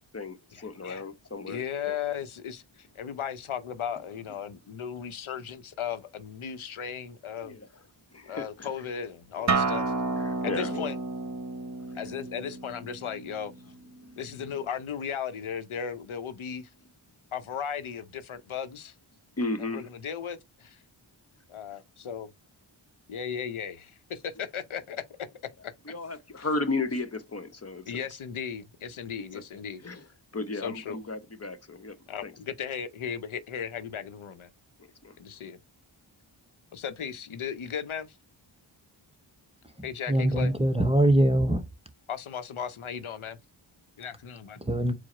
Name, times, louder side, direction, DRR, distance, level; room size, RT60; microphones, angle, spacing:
voice 1, 0.1-2.0 7.4-7.7 8.1-8.7 9.4-9.5 10.2-10.9 11.8-12.1 14.0-14.2 19.4-19.9 25.9-28.2 29.3-32.3 34.8-35.2, left 3 dB, 30° left, 0.9 m, -35 dB
voice 2, 1.5-7.6 8.3-9.9 10.4-11.0 11.9-13.5 14.2-16.7 17.3-19.0 19.6-20.8 21.5-22.3 23.1-25.0 25.6-25.7 26.4-26.5 27.9-29.8 30.5-31.0 32.1-34.5 35.2-35.6 36.7-38.2 39.8-40.5 42.1-43.4 44.0-44.6, left 8 dB, 75° left, 0.7 m, -36 dB
Acoustic guitar, 9.5-14.7, right 3 dB, 35° right, 0.9 m, -31 dB
voice 3, 39.8-41.7 44.6-44.9, right 1 dB, 10° right, 0.6 m, -23 dB
4.6 x 2.1 x 4.2 m
cardioid pair, 50°, 49 cm